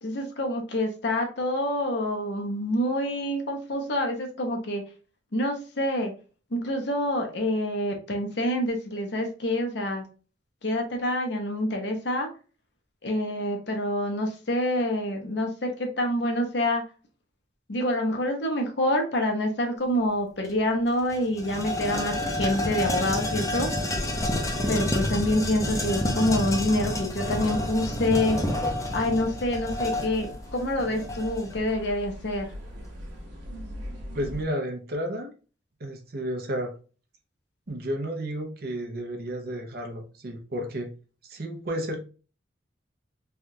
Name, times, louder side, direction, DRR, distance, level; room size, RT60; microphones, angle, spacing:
voice 1, 0.0-4.8 5.3-6.1 6.5-10.0 10.6-12.3 13.0-16.8 17.7-23.7 24.7-28.4 28.9-32.5, left 1 dB, 65° left, 3 dB, 0.8 m, -27 dB
sound 1, 20.4-20.5 20.9-31.6, left 1 dB, 20° left, 0.6 m, -29 dB
sound 2, 23.9-34.4, equal, 85° right, 1.0 m, -40 dB
voice 2, 34.1-35.3 35.8-36.7 37.7-40.9 41.2-42.0, equal, 55° right, 2 dB, 0.8 m, -32 dB
3.4 x 2.4 x 2.7 m, 0.36 s
head